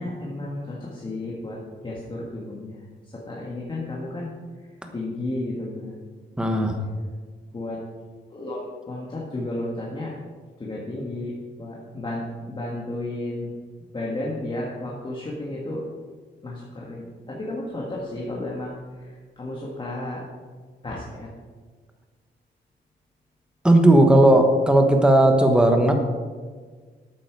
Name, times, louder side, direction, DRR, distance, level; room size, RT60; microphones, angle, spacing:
voice 1, 0.0-1.6 1.8-2.8 3.1-4.3 4.9-6.0 7.5-7.8 8.3-10.1 10.6-11.3 11.6-13.5 13.9-15.9 16.4-18.7 19.4-20.2 20.8-21.3, left 1 dB, 25° left, -4 dB, 1.8 m, -32 dB
voice 2, 6.4-6.8 23.6-25.9, right 1 dB, 5° right, 4 dB, 1.1 m, -16 dB
12.5 x 8.7 x 4.7 m, 1.5 s
wide cardioid pair, 160°, 19 cm